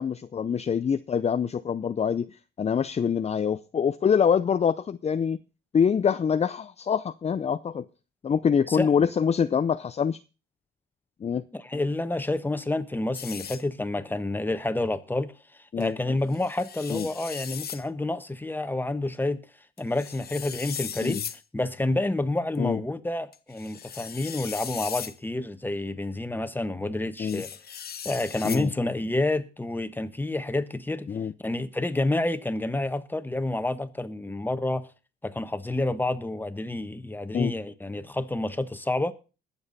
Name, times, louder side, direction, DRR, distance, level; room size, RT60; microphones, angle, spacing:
voice 1, 0.0-5.4 5.7-7.8 8.2-10.2 11.2-11.4 15.7-16.0 16.9-17.1 21.0-21.2 22.6-22.8 27.2-27.4 28.4-28.7 31.1-31.3 37.3-37.5, left 7 dB, 35° left, 0.5 m, -25 dB
voice 2, 8.7-9.1 11.5-15.3 15.8-19.4 19.8-21.2 21.5-27.5 28.0-31.1 31.4-34.9 35.2-39.1, left 2 dB, 10° left, 1.2 m, -29 dB
sound 1, 13.1-13.6 15.8-15.9 16.3-17.8 19.8-21.4 22.6-22.7 23.3-25.2 27.2-28.7, left 8 dB, 50° left, 1.1 m, -38 dB
21.0 x 7.2 x 4.1 m
cardioid pair, 90°, 20 cm